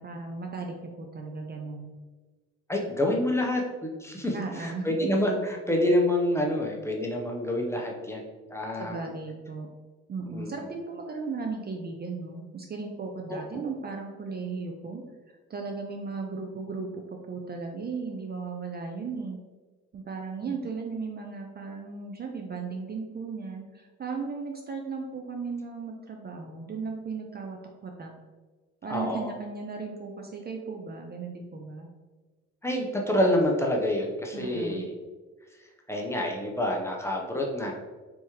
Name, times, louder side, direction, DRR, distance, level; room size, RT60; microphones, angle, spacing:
voice 1, 0.0-1.9 4.3-5.1 8.8-9.7 10.1-15.0 15.5-19.4 19.9-28.1 28.8-31.9 34.3-34.9, right 4 dB, 35° right, 2 dB, 0.4 m, -36 dB
voice 2, 2.7-9.1 10.3-10.5 13.3-13.6 20.4-20.5 28.9-29.3 32.6-34.9 35.9-37.7, left 1 dB, 10° left, -1 dB, 0.6 m, -27 dB
3.5 x 3.0 x 2.9 m, 1.3 s
cardioid pair, 90°, 30 cm